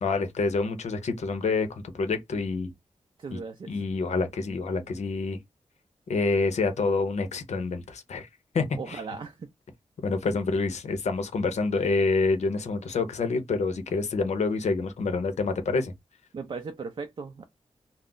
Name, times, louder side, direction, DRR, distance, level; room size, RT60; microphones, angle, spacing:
voice 1, 0.0-2.7 3.3-3.4 3.7-5.4 6.1-8.3 8.5-9.0 10.0-15.9, left 3 dB, 90° left, 0.7 m, -27 dB
voice 2, 3.2-3.7 8.8-9.5 16.3-17.4, right 4 dB, 50° right, 0.4 m, -37 dB
2.3 x 2.0 x 3.8 m
wide cardioid pair, 105°, 11 cm